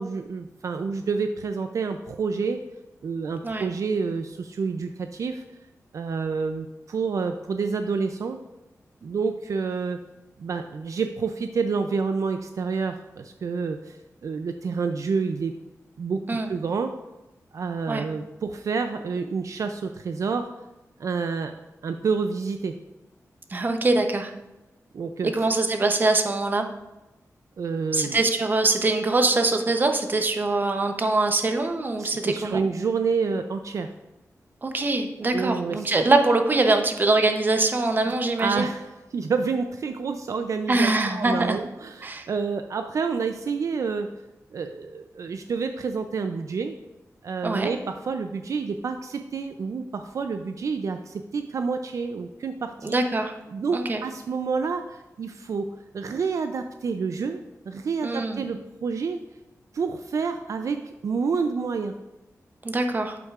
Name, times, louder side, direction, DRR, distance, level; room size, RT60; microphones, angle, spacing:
voice 1, 0.0-2.6 3.0-5.4 5.9-8.4 9.0-10.0 10.4-15.5 16.0-17.0 17.5-20.5 21.0-21.5 21.8-22.8 24.9-25.5 27.6-28.2 32.0-33.9 35.3-35.9 38.0-44.1 44.5-46.7 47.2-52.9 53.5-55.7 55.9-59.2 59.7-61.9, right 5 dB, 65° right, 7 dB, 0.4 m, -28 dB
voice 2, 23.5-24.3 25.3-26.6 27.9-32.6 34.6-38.7 40.7-41.6 42.0-42.3 47.4-47.7 52.8-53.3 53.7-54.0 58.0-58.4 62.6-63.2, right 2 dB, 35° right, 5 dB, 0.7 m, -23 dB
8.3 x 8.1 x 2.4 m, 0.99 s
wide cardioid pair, 140°, 6 cm